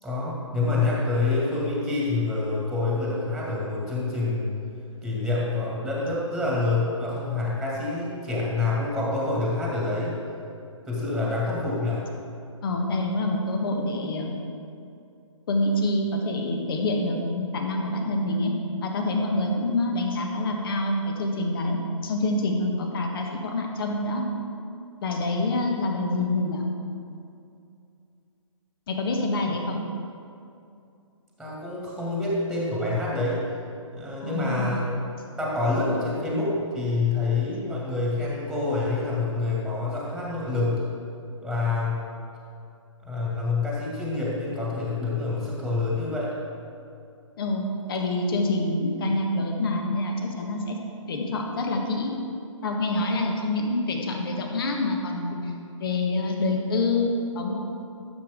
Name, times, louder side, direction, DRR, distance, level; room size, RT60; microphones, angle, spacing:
voice 1, 0.0-4.5 5.0-10.1 10.8-12.0 29.5-29.6 31.4-33.4 33.9-34.8 35.4-40.8 41.4-42.1 43.0-46.3, left 3 dB, ahead, -6 dB, 2.0 m, -27 dB
voice 2, 12.6-14.3 15.5-18.5 18.8-21.8 22.0-24.2 25.0-26.6 28.9-29.8 34.2-34.7 47.4-50.8 51.1-52.1 52.6-55.5 55.8-57.8, left 2 dB, 45° left, 2 dB, 1.4 m, -26 dB
13.5 x 7.4 x 3.6 m, 2.5 s
figure-of-eight pair, 130°, 17 cm